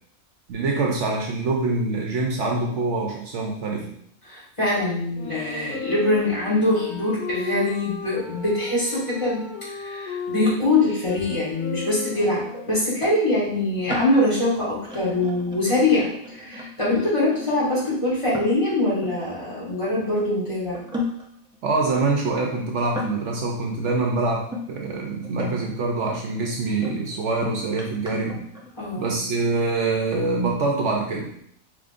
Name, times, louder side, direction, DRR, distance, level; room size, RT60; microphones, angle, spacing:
voice 1, 0.5-3.9 21.6-28.5 29.0-31.3, right 3 dB, 65° right, 0 dB, 1.0 m, -25 dB
voice 2, 4.3-20.8 28.8-29.1, left 2 dB, 25° left, -8 dB, 1.7 m, -23 dB
Wind instrument woodwind instrument, 5.1-13.7, left 4 dB, 85° left, 0.4 m, -36 dB
sound 1, 13.0-20.2 20.7-24.7 25.2-25.7 26.1-29.2 29.9-30.4, left 2 dB, 5° right, 0.4 m, -36 dB
5.0 x 3.3 x 2.5 m, 0.66 s
omnidirectional pair, 1.4 m